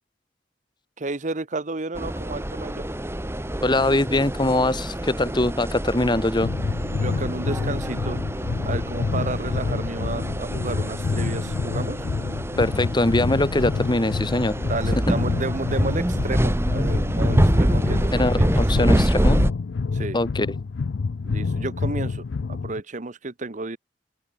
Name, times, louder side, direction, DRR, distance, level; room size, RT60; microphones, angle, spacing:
voice 1, 1.0-2.8 6.9-12.0 14.6-18.5 18.8-18.9 19.9-20.2 21.2-23.8, right 3 dB, 45° right, 1.0 m, -32 dB
sound 1, 2.0-19.5, equal, 15° right, 1.7 m, -26 dB
voice 2, 3.6-6.5 12.6-14.6 14.9-15.1 18.1-19.4 20.1-20.5, left 2 dB, 25° left, 1.5 m, -22 dB
sound 2, 6.4-22.8, left 4 dB, 85° left, 0.5 m, -28 dB
open air
head